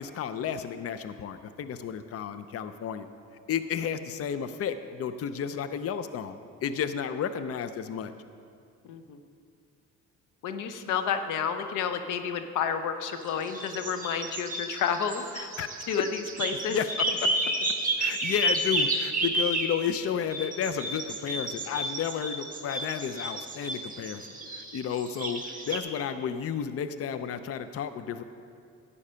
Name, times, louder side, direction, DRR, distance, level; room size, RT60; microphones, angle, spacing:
voice 1, 0.0-3.1 3.5-8.1 15.6-15.7 16.0-16.1 16.7-17.3 18.0-24.3 24.5-28.2, left 8 dB, 50° left, 11 dB, 0.6 m, -32 dB
voice 2, 8.8-9.2 10.4-15.5 15.9-16.0 16.4-16.8, left 7 dB, 90° left, 8 dB, 0.8 m, -30 dB
sound 1, 13.1-19.9 20.3-25.8, right 1 dB, 25° right, 1.5 m, -31 dB
11.5 x 8.5 x 5.6 m, 2.4 s
cardioid pair, 90°, 30 cm